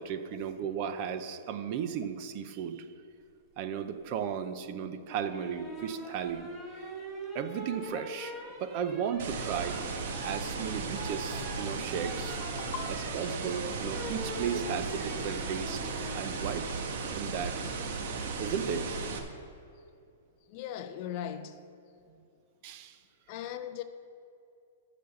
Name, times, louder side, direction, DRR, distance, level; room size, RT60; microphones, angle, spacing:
voice 1, 0.0-2.8 3.6-6.5 7.3-8.3 8.6-9.8 10.2-12.5 12.9-15.8 16.1-16.7 17.1-17.6 18.4-19.0 22.6-23.0, right 7 dB, 30° right, 0.5 m, -35 dB
sound 1, 5.1-16.3 17.9-18.4, right 1 dB, 10° right, 1.1 m, -43 dB
sound 2, 9.2-19.2, right 4 dB, 50° right, 1.2 m, -36 dB
voice 2, 12.4-12.9 14.6-14.7 20.5-21.6 23.3-23.8, left 10 dB, 30° left, 0.5 m, -39 dB
13.5 x 5.1 x 6.9 m
hypercardioid pair, 175°, 0 cm